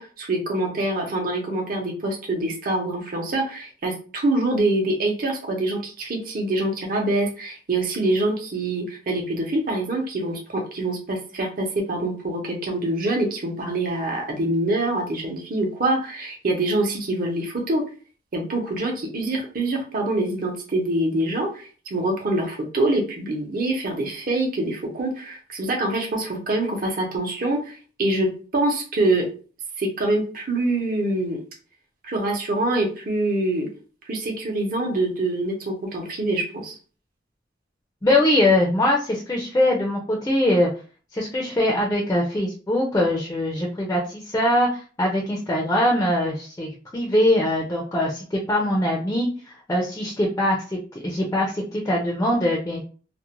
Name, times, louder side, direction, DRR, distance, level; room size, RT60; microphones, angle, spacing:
voice 1, 0.0-17.8 18.3-29.3 29.8-31.4 32.1-33.7 34.1-36.8, right 2 dB, 50° right, 1 dB, 0.7 m, -25 dB
voice 2, 38.0-40.7 41.1-52.9, left 1 dB, 15° left, -2 dB, 0.4 m, -22 dB
2.4 x 2.1 x 2.9 m, 0.38 s
head